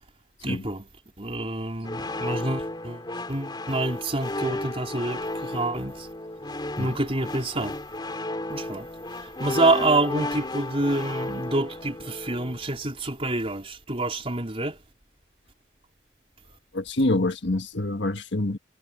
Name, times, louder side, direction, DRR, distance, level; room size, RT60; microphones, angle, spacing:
voice 1, 0.4-0.9 1.2-3.0 3.3-6.1 6.8-7.8 8.5-8.9 9.4-14.8, right 2 dB, 30° right, 4.3 m, -27 dB
sound 1, 1.8-12.8, left 2 dB, 25° left, 2.8 m, -33 dB
voice 2, 16.7-18.6, left 2 dB, 65° left, 1.6 m, -26 dB
head